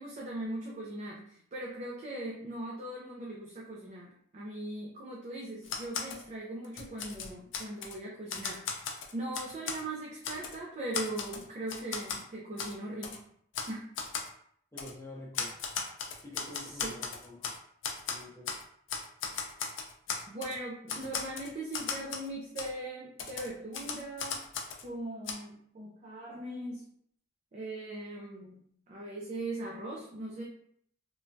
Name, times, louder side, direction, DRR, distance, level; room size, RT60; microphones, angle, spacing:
voice 1, 0.0-13.2 13.7-13.9 16.7-16.9 20.3-24.5 24.8-26.8 27.5-30.4, right 1 dB, 35° right, -3 dB, 0.4 m, -40 dB
Typewriter, 5.6-6.2 6.6-8.0 8.3-9.8 10.2-10.6 10.9-12.2 12.6-12.7 13.0-13.2 13.5-13.7 14.0-14.3 14.8-14.9 15.3-17.6 17.8-18.6 18.9-20.6 20.9-22.3 22.6-22.7 23.2-24.8 25.3-25.4, left 6 dB, 70° left, 0.4 m, -37 dB
voice 2, 14.7-15.5 16.2-17.5 18.1-18.5, left 2 dB, 15° left, -3 dB, 0.7 m, -47 dB
3.1 x 2.2 x 2.6 m, 0.66 s
head